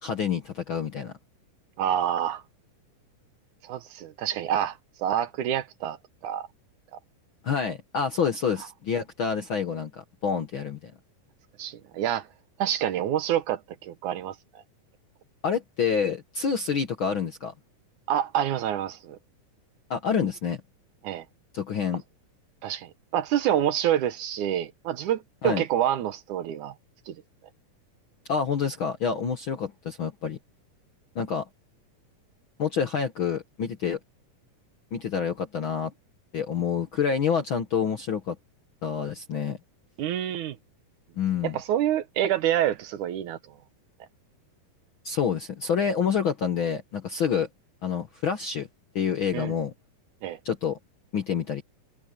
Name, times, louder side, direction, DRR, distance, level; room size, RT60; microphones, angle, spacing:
voice 1, 0.0-1.1 7.4-10.9 15.4-17.5 19.9-20.6 21.5-22.0 25.4-25.6 28.3-30.4 31.1-31.5 32.6-34.0 34.9-35.9 36.3-38.4 38.8-39.6 41.2-41.6 45.0-47.5 47.8-48.7 48.9-49.7 50.4-50.8 51.1-51.6, left 7 dB, 55° left, 1.4 m, -27 dB
voice 2, 1.8-2.4 3.6-6.0 6.2-6.5 11.6-12.3 12.6-14.3 18.1-19.2 21.0-21.3 22.6-26.7 27.1-27.2 40.0-40.6 41.4-43.4 49.3-49.5 50.2-50.4, right 11 dB, 70° right, 2.3 m, -27 dB
omnidirectional pair, 3.9 m